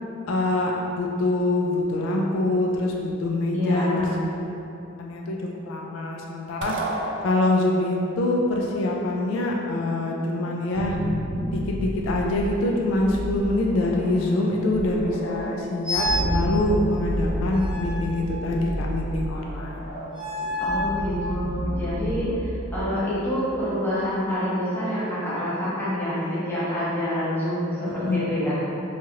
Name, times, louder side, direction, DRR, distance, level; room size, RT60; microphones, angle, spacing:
voice 1, 0.2-0.7 1.0-3.9 5.0-5.4 5.7-6.7 7.2-11.0 11.5-16.1 16.3-19.9 28.0-28.2, left 2 dB, 80° left, -1 dB, 0.3 m, -24 dB
voice 2, 3.5-4.1 20.6-28.6, equal, 10° left, -11 dB, 0.8 m, -27 dB
sound 1, 6.6-7.9, right 2 dB, 60° right, 0.3 m, -31 dB
sound 2, 10.6-23.3, equal, 60° left, 1.2 m, -31 dB
sound 3, 15.8-16.3 17.5-18.7 20.1-21.0, left 1 dB, 25° right, 0.6 m, -29 dB
3.1 x 2.3 x 2.7 m, 2.9 s
head